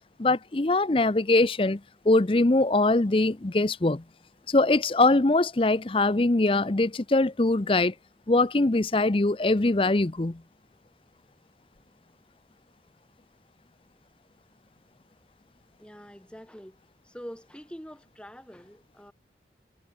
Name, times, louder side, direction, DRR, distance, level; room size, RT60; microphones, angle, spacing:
voice 1, 0.2-4.0 4.5-7.9 8.3-10.4, left 2 dB, 30° left, 0.7 m, -22 dB
voice 2, 15.8-16.8 17.0-19.1, equal, 5° left, 4.5 m, -45 dB
head